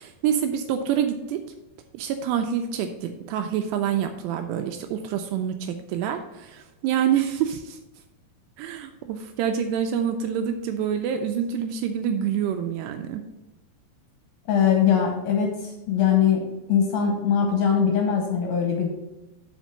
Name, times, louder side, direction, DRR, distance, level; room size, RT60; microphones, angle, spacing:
voice 1, 0.0-1.4 1.9-7.8 8.6-13.2, right 8 dB, 80° right, 6 dB, 2.5 m, -27 dB
voice 2, 14.5-16.4 16.7-18.9, left 7 dB, 75° left, 1 dB, 2.3 m, -21 dB
6.2 x 5.1 x 6.6 m, 1.0 s
omnidirectional pair, 5.2 m